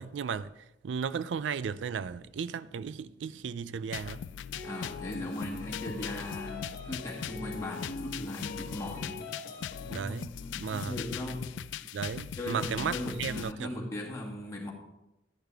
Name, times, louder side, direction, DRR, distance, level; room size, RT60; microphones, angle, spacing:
voice 1, 0.0-4.2 9.9-10.3 10.6-11.0 11.9-13.8, right 6 dB, 80° right, 0.4 m, -35 dB
sound 1, 1.1-14.1, right 1 dB, 30° right, 1.4 m, -58 dB
sound 2, 3.9-13.5, left 9 dB, 80° left, 0.3 m, -40 dB
sound 3, 4.5-10.0, left 2 dB, 65° left, 1.1 m, -42 dB
voice 2, 4.6-9.2 9.8-11.5 12.4-14.7, left 1 dB, 15° left, 2.2 m, -38 dB
11.5 x 10.5 x 3.5 m
head